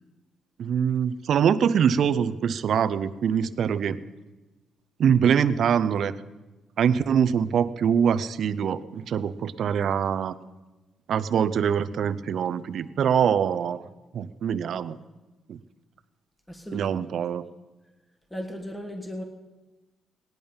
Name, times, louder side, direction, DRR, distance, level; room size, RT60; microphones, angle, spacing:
voice 1, 0.6-4.0 5.0-6.1 6.8-10.4 11.1-13.9 14.1-15.0 15.5-15.6 16.7-17.4, right 8 dB, 60° right, 13 dB, 0.6 m, -24 dB
voice 2, 16.5-16.9 18.3-19.2, equal, 5° left, 3 dB, 1.5 m, -36 dB
18.5 x 10.5 x 5.4 m, 1.2 s
cardioid pair, 115°, 0 cm